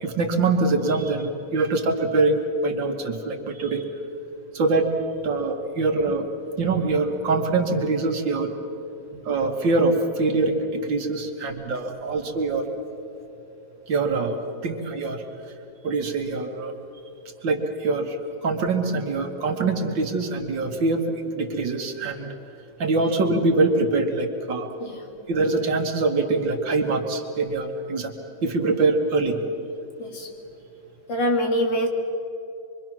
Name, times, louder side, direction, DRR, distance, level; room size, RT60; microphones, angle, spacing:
voice 1, 0.0-3.9 4.5-4.9 5.2-6.3 6.6-8.5 9.3-12.7 13.9-14.4 14.6-15.2 15.8-16.7 17.4-18.2 18.4-21.0 21.4-22.3 22.8-24.7 25.3-28.1 28.4-29.4, right 3 dB, 70° right, 3 dB, 2.4 m, -24 dB
voice 2, 31.1-31.9, equal, 70° left, 2 dB, 2.9 m, -24 dB
24.5 x 24.0 x 6.1 m, 2.8 s
omnidirectional pair, 2.1 m